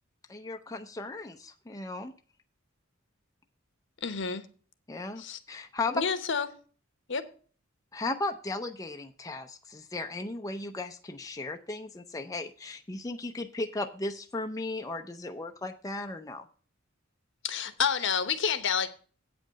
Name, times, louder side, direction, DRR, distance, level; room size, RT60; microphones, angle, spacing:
voice 1, 0.3-2.1 4.9-5.2 5.5-6.0 7.9-16.5, left 2 dB, 15° left, 0.6 m, -36 dB
voice 2, 4.0-4.5 5.2-5.4 5.9-6.5 7.1-7.3 17.4-18.9, left 6 dB, 65° left, 1.0 m, -29 dB
8.5 x 5.4 x 7.5 m
head